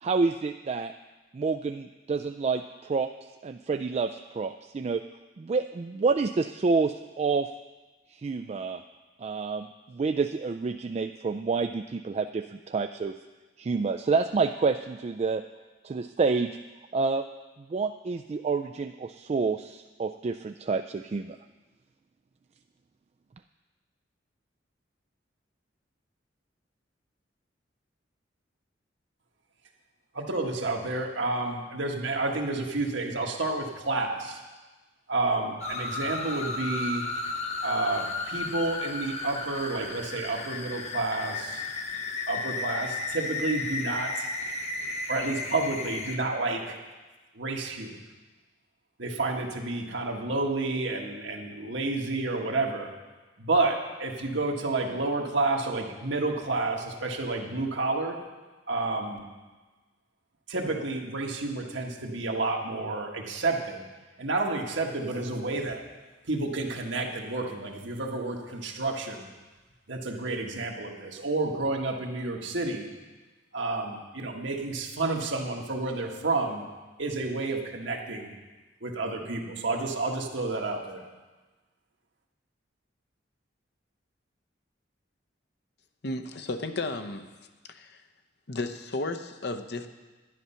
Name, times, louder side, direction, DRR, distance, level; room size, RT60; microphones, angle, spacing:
voice 1, 0.0-0.9 1.3-5.0 5.4-7.5 8.1-8.8 9.2-13.1 13.6-15.4 15.8-16.6 16.9-17.2 17.7-21.4, right 4 dB, 35° right, 7 dB, 0.3 m, -28 dB
voice 2, 30.1-34.4 35.1-37.0 37.6-41.7 42.3-44.3 45.1-46.8 47.3-47.9 49.0-52.9 53.4-58.2 58.7-59.2 60.5-63.8 64.2-65.8 66.3-69.3 69.9-72.9 73.5-76.6 77.0-78.3 78.8-81.0, right 2 dB, 75° right, 1 dB, 1.6 m, -30 dB
sound 1, 35.6-46.2, left 3 dB, 35° left, 1.1 m, -34 dB
voice 3, 86.0-87.2 87.7-88.0 88.5-89.9, left 2 dB, 60° left, 8 dB, 0.8 m, -33 dB
11.0 x 11.0 x 5.7 m, 1.2 s
head